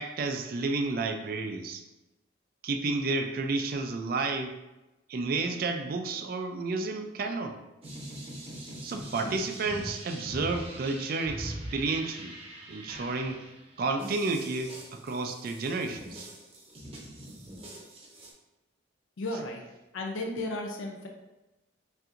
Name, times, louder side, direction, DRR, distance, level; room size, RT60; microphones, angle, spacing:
voice 1, 0.0-1.8 2.6-4.6 5.1-7.6 8.8-12.4 12.7-13.5 13.8-16.3, right 3 dB, 50° right, 5 dB, 0.3 m, -31 dB
sound 1, 7.8-18.3, right 1 dB, 30° right, 0.7 m, -43 dB
voice 2, 19.2-19.6 19.9-21.1, left 2 dB, 85° left, 1 dB, 0.5 m, -34 dB
5.5 x 2.6 x 2.5 m, 1.0 s
head